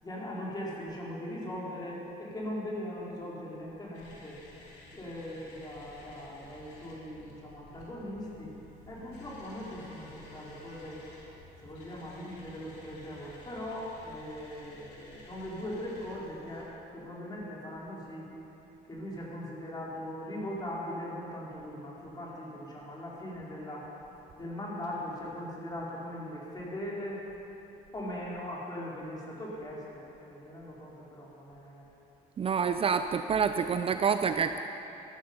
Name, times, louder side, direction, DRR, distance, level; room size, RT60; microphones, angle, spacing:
voice 1, 0.0-4.4 4.9-8.5 8.9-11.0 11.6-18.3 18.9-23.9 24.4-27.2 27.9-31.8, left 1 dB, 25° left, -5 dB, 4.1 m, -40 dB
sound 1, 3.9-16.6, left 2 dB, 85° left, 3.4 m, -53 dB
voice 2, 32.4-34.6, right 6 dB, 35° right, 9 dB, 0.4 m, -27 dB
14.0 x 13.5 x 5.3 m, 2.9 s
cardioid pair, 110°, 17 cm